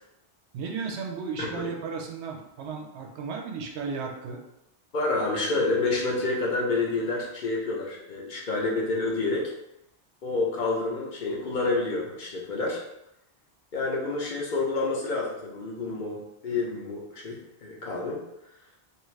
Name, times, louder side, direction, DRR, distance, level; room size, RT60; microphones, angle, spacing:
voice 1, 0.5-4.4, right 5 dB, 90° right, 2 dB, 0.9 m, -34 dB
voice 2, 4.9-9.5 10.2-12.8 13.7-18.2, left 3 dB, 55° left, -2 dB, 0.6 m, -28 dB
2.5 x 2.4 x 3.1 m, 0.85 s
omnidirectional pair, 1.1 m